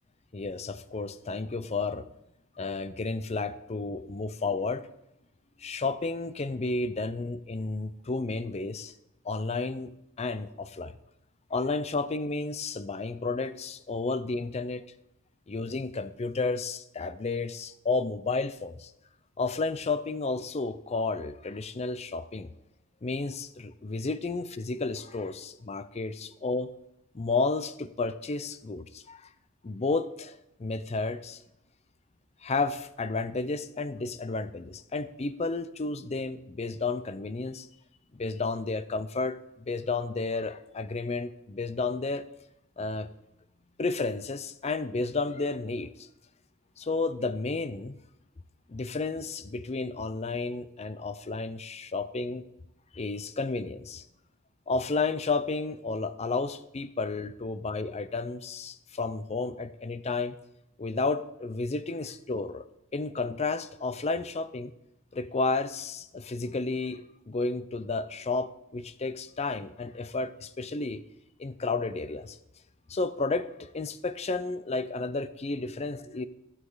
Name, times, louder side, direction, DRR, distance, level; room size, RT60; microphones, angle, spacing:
voice 1, 0.3-2.0 2.6-4.9 5.6-8.9 9.2-9.9 10.2-11.0 11.5-14.8 15.5-18.9 19.4-22.5 23.0-26.7 27.1-29.3 29.6-31.4 32.4-37.7 38.1-42.3 42.8-43.1 43.8-46.1 46.8-48.0 48.7-52.4 52.9-54.0 54.7-60.4 60.8-62.7 62.9-64.7 65.1-71.0 71.4-72.4 72.9-76.3, left 3 dB, 30° left, 13 dB, 0.5 m, -32 dB
14.5 x 7.3 x 4.0 m, 0.85 s
head